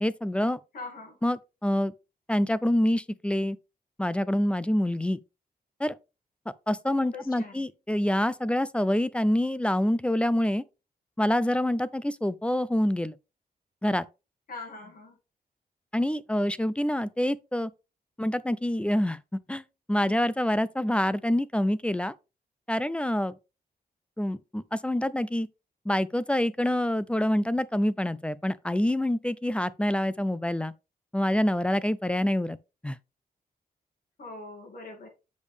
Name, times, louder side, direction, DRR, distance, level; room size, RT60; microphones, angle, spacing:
voice 1, 0.0-0.6 1.2-1.9 2.3-3.6 4.0-5.2 5.8-6.0 6.7-10.6 11.2-13.1 13.8-14.1 15.9-17.7 18.2-19.2 19.5-19.6 19.9-22.1 22.7-23.3 24.2-25.5 25.9-30.7 31.1-32.6 32.8-33.0, left 1 dB, 5° left, 0.3 m, -26 dB
voice 2, 0.7-1.2 7.0-7.7 14.5-15.2 34.2-35.1, left 3 dB, 65° left, 2.3 m, -42 dB
8.3 x 5.2 x 3.3 m
wide cardioid pair, 155°, 16 cm